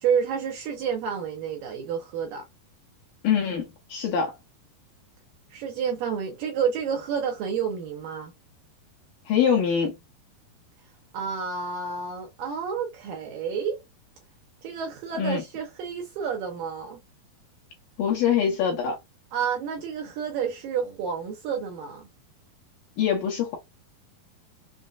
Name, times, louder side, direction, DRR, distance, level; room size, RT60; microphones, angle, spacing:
voice 1, 0.0-2.5 5.5-8.3 11.1-13.8 14.6-17.0 19.3-22.1, right 7 dB, 80° right, 2.0 m, -29 dB
voice 2, 3.2-3.7 3.9-4.3 9.3-9.9 15.2-15.4 18.0-19.0 23.0-23.6, left 7 dB, 75° left, 2.2 m, -23 dB
6.1 x 2.1 x 2.4 m
omnidirectional pair, 4.6 m